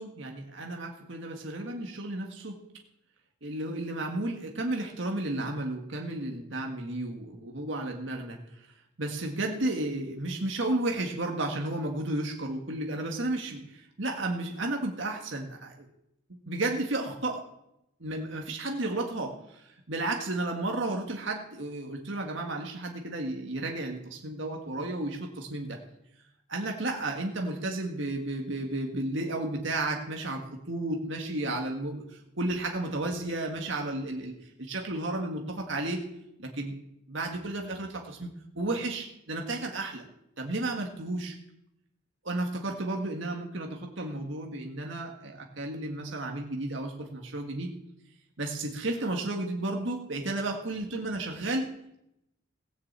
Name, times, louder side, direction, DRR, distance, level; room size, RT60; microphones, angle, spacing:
voice 1, 0.0-2.6 3.4-8.4 9.0-15.9 16.3-17.4 18.0-25.8 26.5-36.0 36.4-36.8 37.1-38.3 38.5-40.0 40.4-41.3 42.2-47.7 48.4-51.7, right 2 dB, 65° right, 1 dB, 1.8 m, -33 dB
17.5 x 7.0 x 8.3 m, 0.81 s
head